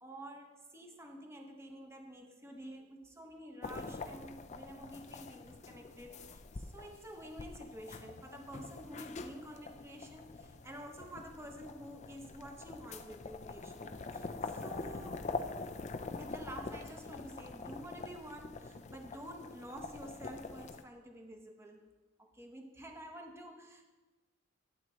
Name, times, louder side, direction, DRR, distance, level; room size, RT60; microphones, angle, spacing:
voice 1, 0.0-15.2 16.2-21.9 22.2-23.9, right 1 dB, 15° right, 3 dB, 0.9 m, -49 dB
sound 1, 3.6-20.8, left 3 dB, 35° left, 0.5 m, -45 dB
12.5 x 8.7 x 3.1 m, 1.2 s
head